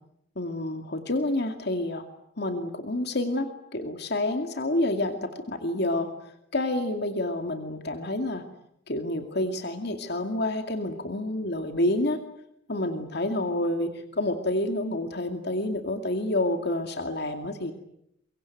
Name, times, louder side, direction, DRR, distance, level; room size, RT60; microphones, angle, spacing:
voice 1, 0.4-2.0 2.4-6.1 6.5-8.4 8.9-12.2 12.7-17.7, left 1 dB, 55° left, 6 dB, 2.3 m, -28 dB
24.0 x 23.5 x 9.3 m, 0.76 s
head